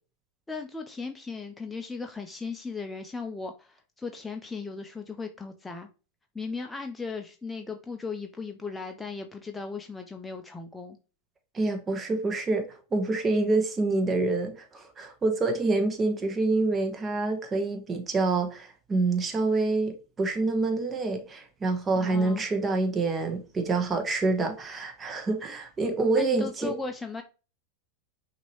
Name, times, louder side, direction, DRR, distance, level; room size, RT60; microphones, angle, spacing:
voice 1, 0.5-5.9 6.3-11.0 21.9-22.5 26.1-27.2, left 4 dB, 10° left, 0.5 m, -37 dB
voice 2, 11.5-26.7, right 3 dB, 20° right, 1.1 m, -27 dB
5.8 x 2.8 x 3.0 m
hypercardioid pair, 105°, 0 cm